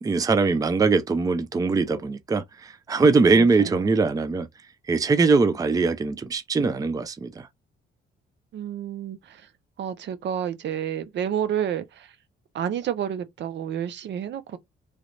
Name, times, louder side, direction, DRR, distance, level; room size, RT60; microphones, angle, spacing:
voice 1, 0.0-4.5 4.9-7.5, right 4 dB, 20° right, 0.4 m, -22 dB
voice 2, 3.3-3.9 8.5-9.5 9.8-12.1 12.5-14.6, right 9 dB, 65° right, 0.6 m, -30 dB
3.1 x 2.4 x 3.1 m
cardioid pair, 90°, 20 cm